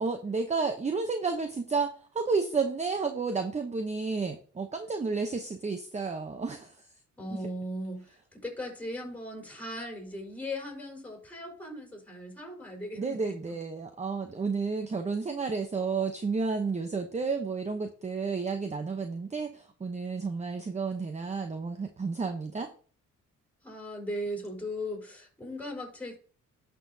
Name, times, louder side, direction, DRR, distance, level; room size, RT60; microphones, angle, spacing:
voice 1, 0.0-6.7 7.3-7.4 13.0-22.7, right 4 dB, 25° right, 7 dB, 0.8 m, -31 dB
voice 2, 7.2-13.6 23.6-26.2, left 1 dB, 5° left, 1 dB, 4.7 m, -38 dB
11.0 x 6.1 x 2.7 m, 0.43 s
cardioid pair, 90°, 30 cm